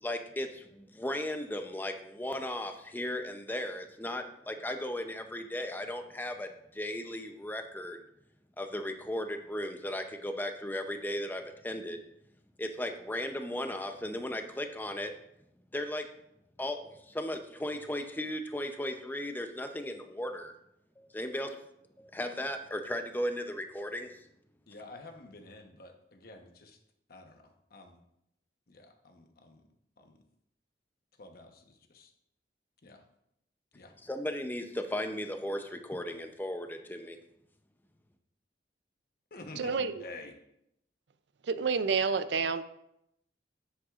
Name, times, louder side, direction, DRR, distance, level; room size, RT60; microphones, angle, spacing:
voice 1, 0.0-8.0 8.6-12.0 12.6-15.1 15.7-16.1 16.6-20.5 21.0-21.5 22.0-24.2 34.0-37.2, left 1 dB, 10° left, 6 dB, 0.6 m, -36 dB
voice 2, 24.7-26.8 27.1-27.4 27.7-28.0 28.7-29.6 30.0-30.2 31.2-32.1 32.8-33.0 33.7-33.9 39.3-40.3, left 2 dB, 55° left, 4 dB, 1.0 m, -49 dB
voice 3, 39.6-40.1 41.4-42.6, right 5 dB, 70° right, 12 dB, 0.5 m, -29 dB
9.9 x 7.8 x 2.5 m, 0.78 s
head